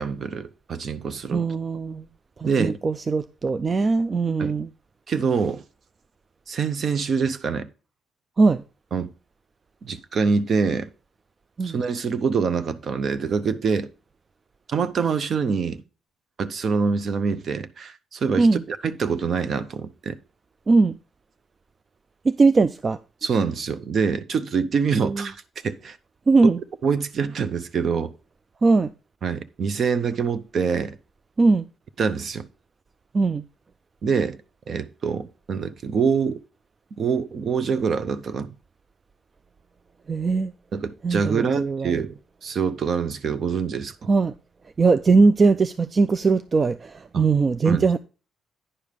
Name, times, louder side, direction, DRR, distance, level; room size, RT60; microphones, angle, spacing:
voice 1, 0.0-1.5 2.4-2.8 4.4-4.6 5.1-5.6 6.5-7.7 8.9-9.1 9.8-10.9 11.6-13.9 14.7-15.8 16.4-20.2 23.2-25.4 25.6-26.0 26.8-28.1 29.2-31.0 32.0-32.5 34.0-34.4 34.7-36.4 37.0-38.5 40.7-42.1 42.4-44.1 47.1-47.2 47.6-47.8, right 5 dB, 55° right, 0.7 m, -25 dB
voice 2, 1.3-2.0 2.4-4.7 8.4-8.6 11.6-11.8 18.4-18.6 20.7-20.9 22.2-23.0 25.0-25.3 26.3-26.6 28.6-28.9 31.4-31.6 33.1-33.4 40.1-40.5 41.0-41.9 44.1-44.3 44.8-48.0, right 4 dB, 35° right, 0.4 m, -20 dB
9.9 x 5.0 x 5.2 m
cardioid pair, 90°, 0 cm